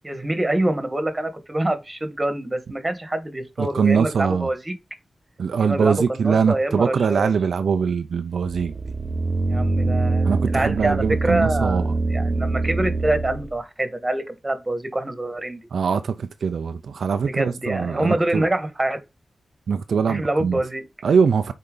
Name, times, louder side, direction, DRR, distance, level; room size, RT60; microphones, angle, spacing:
voice 1, 0.0-4.7 5.6-7.3 9.4-15.6 17.3-19.0 20.0-20.8, right 1 dB, 20° right, 1.5 m, -25 dB
voice 2, 3.6-4.5 5.4-8.8 10.2-11.9 15.7-18.5 19.7-20.6 21.0-21.5, right 6 dB, 85° right, 0.5 m, -22 dB
sound 1, 8.5-13.5, right 3 dB, 40° right, 0.6 m, -24 dB
6.6 x 4.6 x 3.9 m
wide cardioid pair, 90°, 0 cm